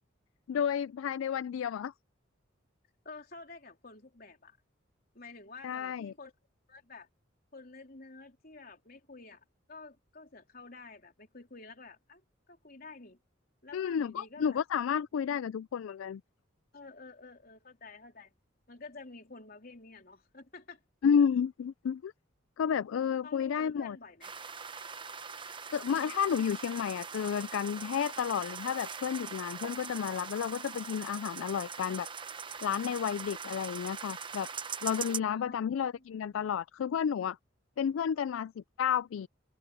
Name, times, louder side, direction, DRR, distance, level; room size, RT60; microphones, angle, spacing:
voice 1, 0.5-1.9 5.6-6.1 13.7-16.2 21.0-22.1 22.6-24.0 25.7-32.1 32.6-34.5 34.8-37.4 37.8-39.3, left 7 dB, 90° left, 0.3 m, -31 dB
voice 2, 3.0-4.6 5.1-6.3 6.7-7.1 7.5-12.2 12.5-13.2 13.6-14.6 16.7-18.3 18.7-20.8 23.2-24.4 30.8-31.3 35.2-36.0, left 3 dB, 50° left, 3.9 m, -50 dB
sound 1, 24.2-35.2, right 6 dB, 25° right, 0.9 m, -42 dB
head